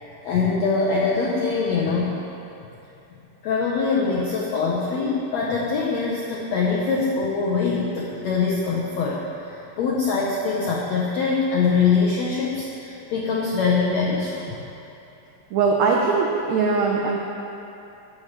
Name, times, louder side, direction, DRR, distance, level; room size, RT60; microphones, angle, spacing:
voice 1, 0.2-2.2 3.4-14.7, left 4 dB, 85° left, -4 dB, 1.5 m, -23 dB
voice 2, 15.5-17.2, right 4 dB, 90° right, -1 dB, 1.6 m, -21 dB
10.5 x 8.6 x 3.2 m, 2.8 s
omnidirectional pair, 4.0 m